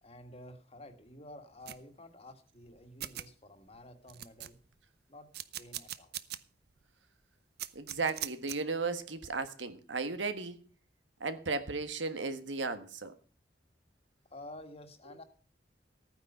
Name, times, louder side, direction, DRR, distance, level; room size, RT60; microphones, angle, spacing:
voice 1, 0.0-4.6 5.1-6.1 14.3-15.2, left 1 dB, 35° left, 1.8 m, -51 dB
sound 1, 1.7-1.8 2.7-2.8 3.0-3.3 3.7-3.8 4.1-4.8 5.3-6.4 6.8-6.9 7.6-8.6, right 12 dB, 60° right, 0.7 m, -40 dB
voice 2, 7.7-10.6 11.2-13.1, right 4 dB, 85° right, 1.4 m, -35 dB
14.0 x 9.6 x 5.4 m
head